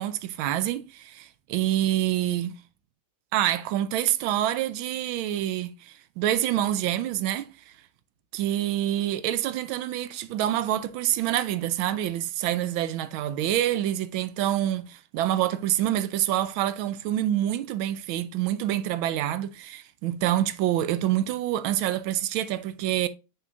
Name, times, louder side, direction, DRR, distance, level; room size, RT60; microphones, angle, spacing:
voice 1, 0.0-2.5 3.3-7.5 8.3-23.1, right 12 dB, 90° right, 1.4 m, -27 dB
6.7 x 5.9 x 2.5 m
omnidirectional pair, 2.1 m